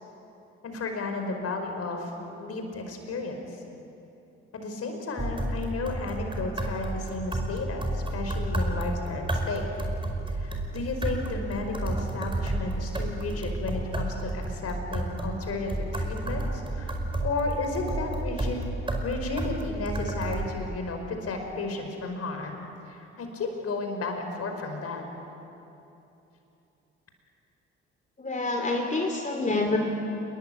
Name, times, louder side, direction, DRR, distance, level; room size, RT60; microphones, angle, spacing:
voice 1, 0.6-2.1 2.4-3.5 4.5-9.8 10.3-16.9 17.2-18.6 19.0-25.0, left 3 dB, 45° left, 4 dB, 5.1 m, -33 dB
sound 1, 5.2-20.4, right 1 dB, 15° right, 5.1 m, -31 dB
voice 2, 28.2-29.8, left 2 dB, 25° left, 2 dB, 3.2 m, -27 dB
30.0 x 21.0 x 8.9 m, 2.9 s
figure-of-eight pair, 45°, 33 cm